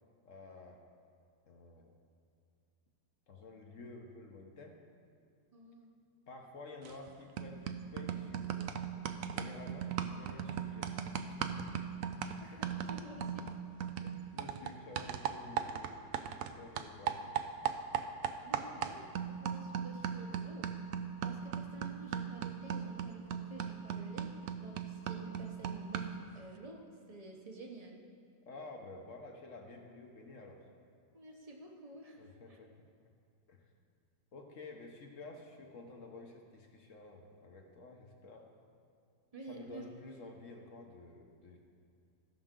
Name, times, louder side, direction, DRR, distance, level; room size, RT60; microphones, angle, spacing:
voice 1, 0.2-0.8 1.5-1.9 3.3-4.8 6.3-8.7 9.2-11.0 11.3-11.6 12.5-12.6 14.0-15.9 16.5-17.4 18.6-18.8 28.5-30.6 32.1-32.9 33.5-33.6 34.3-38.5 39.4-41.6, left 3 dB, 50° left, 2 dB, 1.1 m, -51 dB
voice 2, 5.5-5.9 12.4-13.5 18.4-19.1 19.4-20.8 21.2-28.0 31.1-32.2 32.5-32.6 39.3-39.8, right 2 dB, 30° right, 0 dB, 0.7 m, -50 dB
sound 1, 6.9-7.1 7.4-16.5 16.8-26.3, right 8 dB, 80° right, 0.7 m, -38 dB
16.5 x 6.1 x 3.7 m, 2.4 s
omnidirectional pair, 2.0 m